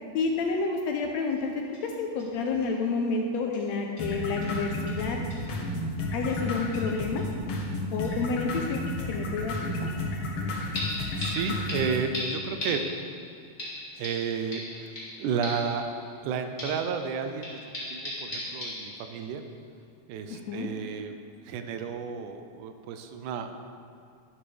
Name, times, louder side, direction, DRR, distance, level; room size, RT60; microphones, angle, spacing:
voice 1, 0.1-1.5 1.8-5.2 6.1-7.2 7.9-8.8 9.1-9.9 20.3-20.7, left 4 dB, 75° left, 2 dB, 1.7 m, -29 dB
sound 1, 1.3-1.4 1.7-1.8 2.2-2.3 2.6-2.7 3.5-3.6 4.0-4.1 4.4-4.5 4.9-5.0 5.3-5.5 6.3-6.4 6.7-7.3 7.6-7.7 8.0-8.1 10.7-16.3 16.6-19.4 19.8-19.9, left 1 dB, 20° left, 2.3 m, -38 dB
sound 2, 4.0-12.0, left 2 dB, 55° left, 1.7 m, -32 dB
voice 2, 11.2-12.8 14.0-15.8 16.2-17.6 17.9-19.4 20.1-21.1 21.5-23.6, right 6 dB, 80° right, 7 dB, 2.1 m, -32 dB
11.5 x 11.5 x 3.4 m, 2.3 s
omnidirectional pair, 3.6 m